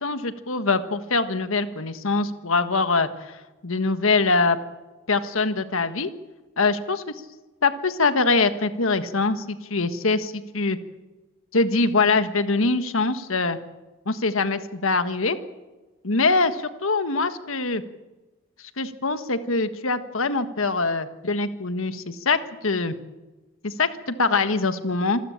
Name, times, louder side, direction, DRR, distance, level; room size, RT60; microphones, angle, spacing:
voice 1, 0.0-3.3 3.6-4.6 5.1-6.1 6.6-7.0 7.6-10.8 11.5-13.6 14.0-15.4 16.0-17.8 18.8-22.9 23.6-25.2, left 3 dB, 75° left, 10 dB, 1.6 m, -23 dB
26.5 x 13.5 x 8.7 m, 1.2 s
head